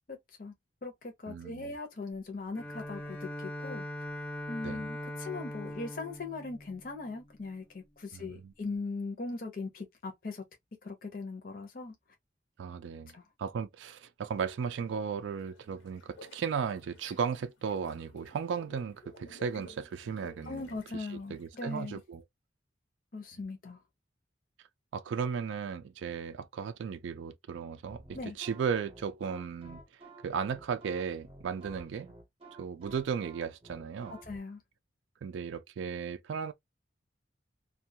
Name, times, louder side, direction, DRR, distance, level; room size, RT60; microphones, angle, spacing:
voice 1, 0.1-0.5 0.8-3.8 4.5-10.4 10.8-11.9 13.1-13.2 20.5-22.0 23.1-23.8 28.1-28.4 34.1-34.6, left 3 dB, 45° left, 0.6 m, -40 dB
voice 2, 1.3-1.7 4.6-4.8 8.1-8.5 12.6-13.1 13.4-20.6 21.3-22.2 24.9-29.8 30.2-32.1 32.6-34.2 35.2-36.5, right 6 dB, 75° right, 0.3 m, -35 dB
Bowed string instrument, 2.5-7.6, left 1 dB, 5° left, 0.4 m, -41 dB
sound 1, 15.4-22.1, left 2 dB, 80° left, 0.9 m, -55 dB
sound 2, 27.8-34.4, right 2 dB, 30° right, 0.7 m, -52 dB
2.3 x 2.2 x 2.7 m
head